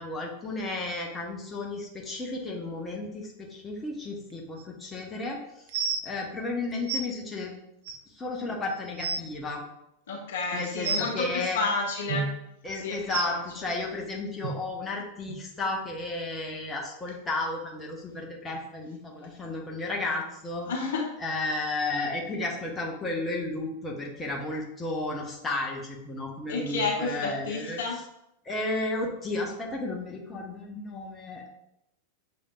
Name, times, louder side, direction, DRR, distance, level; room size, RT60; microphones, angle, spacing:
voice 1, 0.0-5.7 6.0-7.5 8.1-9.6 10.5-11.6 12.6-20.7 21.2-27.8 28.4-31.5, left 2 dB, 15° left, -1 dB, 0.9 m, -33 dB
sound 1, 4.6-4.7 5.7-6.0 6.9-7.0 7.8-7.9 8.5-8.6 8.9-9.2 10.8-11.1 12.1-12.3 13.1-13.3 14.4-14.5 15.3-15.4 16.0-16.1, right 5 dB, 55° right, 0.6 m, -29 dB
voice 2, 10.1-12.3 12.8-13.7 20.7-21.1 26.5-28.0, left 3 dB, 60° left, 0 dB, 1.0 m, -31 dB
6.5 x 3.5 x 2.4 m, 0.80 s
figure-of-eight pair, 90°, 0 cm